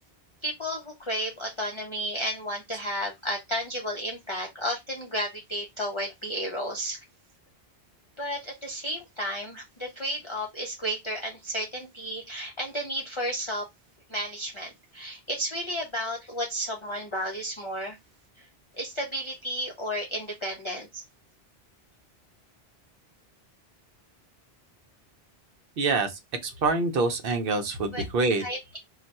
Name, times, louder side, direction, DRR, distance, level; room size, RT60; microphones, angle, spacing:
voice 1, 0.4-7.0 8.2-13.6 14.1-18.0 18.4-18.5 18.7-21.0 27.9-28.0 28.4-28.8, equal, 35° left, 0.5 m, -32 dB
voice 2, 25.8-26.1 26.4-28.4, right 3 dB, 65° right, 0.8 m, -25 dB
2.3 x 2.2 x 3.9 m
omnidirectional pair, 1.1 m